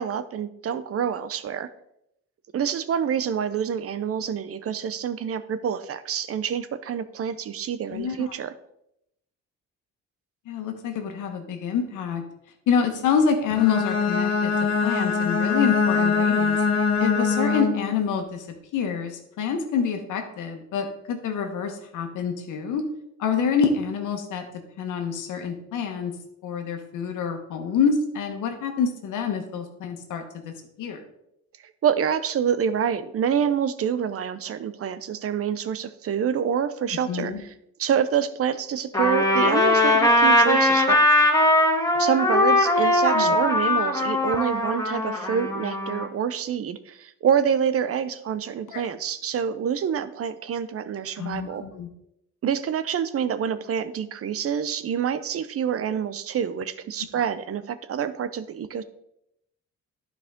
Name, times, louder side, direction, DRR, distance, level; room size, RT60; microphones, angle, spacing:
voice 1, 0.0-1.7 2.5-8.5 31.8-37.5 37.8-41.1 41.9-51.6 52.4-58.8, right 8 dB, 50° right, 14 dB, 0.7 m, -27 dB
voice 2, 7.9-8.3 10.5-12.2 12.7-14.5 14.8-16.6 17.0-18.5 18.7-22.8 23.2-24.5 24.8-26.1 26.4-31.0 37.1-37.4 43.1-43.3 48.7-48.8 51.2-51.9, left 6 dB, 85° left, 5 dB, 1.4 m, -27 dB
Bowed string instrument, 13.5-18.0, left 4 dB, 60° left, 1.1 m, -23 dB
Trumpet, 38.9-46.0, left 1 dB, 10° left, 2.0 m, -20 dB
11.5 x 4.8 x 3.7 m, 0.79 s
cardioid pair, 90°, 30 cm